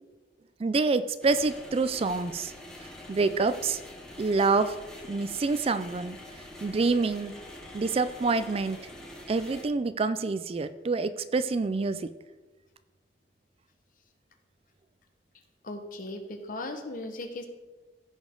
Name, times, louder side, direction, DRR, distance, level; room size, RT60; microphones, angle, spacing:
voice 1, 0.6-2.5 3.1-3.8 4.2-4.8 5.1-6.2 6.6-7.3 7.7-8.8 9.3-12.1, right 3 dB, 35° right, 12 dB, 0.4 m, -27 dB
sound 1, 1.2-9.7, left 1 dB, 5° left, 1.4 m, -45 dB
voice 2, 15.6-17.5, left 2 dB, 50° left, 6 dB, 1.1 m, -37 dB
15.5 x 5.3 x 3.8 m, 1.2 s
head